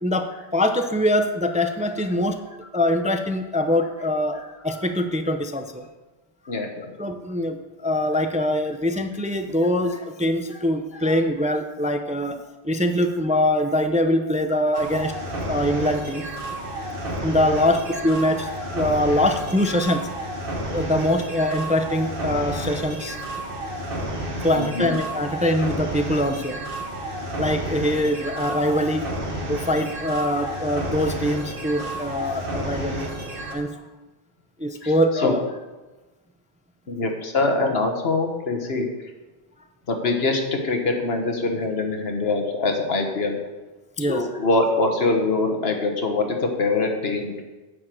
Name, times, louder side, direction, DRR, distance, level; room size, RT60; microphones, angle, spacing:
voice 1, 0.0-2.4 2.7-5.9 7.0-12.4 12.6-15.1 15.5-16.2 16.9-20.0 20.7-23.2 24.4-26.6 27.4-29.1 29.5-33.1 33.5-33.7 34.6-35.4 44.0-44.2, left 1 dB, 10° right, 7 dB, 0.4 m, -23 dB
sound 1, 14.7-33.5, right 1 dB, 55° right, 1.8 m, -31 dB
voice 2, 24.6-24.9 34.8-35.3 36.9-38.9 39.9-43.4 44.1-47.4, left 3 dB, 70° left, 3 dB, 1.6 m, -23 dB
9.5 x 5.0 x 7.6 m, 1.2 s
omnidirectional pair, 1.1 m